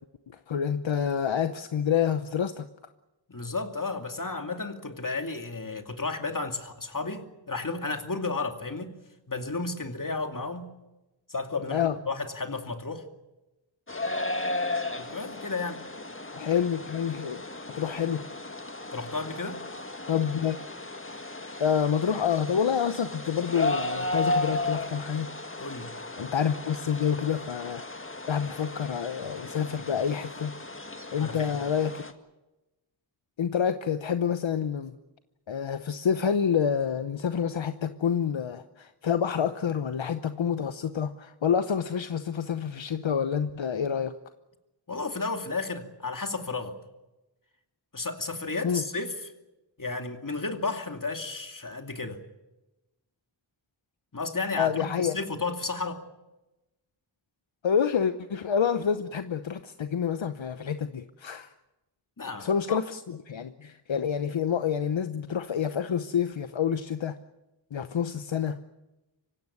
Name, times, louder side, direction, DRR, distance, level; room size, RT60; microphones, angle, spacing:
voice 1, 0.5-2.7 11.7-11.9 16.3-17.4 17.8-18.2 20.1-20.6 21.6-25.3 26.2-27.8 28.3-30.5 31.1-32.1 33.4-34.9 35.5-44.1 48.6-48.8 54.6-55.2 57.6-61.5 62.4-67.2 67.7-68.6, left 7 dB, 75° left, 10 dB, 0.9 m, -28 dB
voice 2, 3.3-9.0 9.3-10.7 11.3-13.0 15.0-15.8 18.9-19.6 25.6-25.9 31.2-31.6 44.9-46.8 47.9-49.3 49.8-52.2 54.1-56.0 62.2-62.8, left 3 dB, 45° left, 6 dB, 2.6 m, -33 dB
sound 1, 13.9-32.1, left 2 dB, 25° left, 1.9 m, -35 dB
25.0 x 16.5 x 9.6 m, 1.0 s
wide cardioid pair, 50°, 46 cm